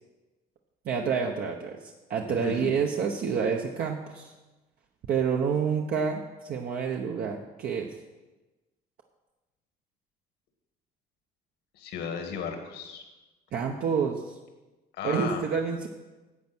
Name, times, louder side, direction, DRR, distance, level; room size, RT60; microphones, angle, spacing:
voice 1, 0.8-1.8 2.1-4.3 5.1-7.9 13.5-14.3 15.0-15.9, right 6 dB, 60° right, 1 dB, 1.0 m, -28 dB
voice 2, 2.3-2.8 11.7-13.0 14.9-15.4, left 7 dB, 85° left, 5 dB, 1.9 m, -35 dB
11.0 x 7.7 x 6.2 m, 1.1 s
cardioid pair, 110°, 17 cm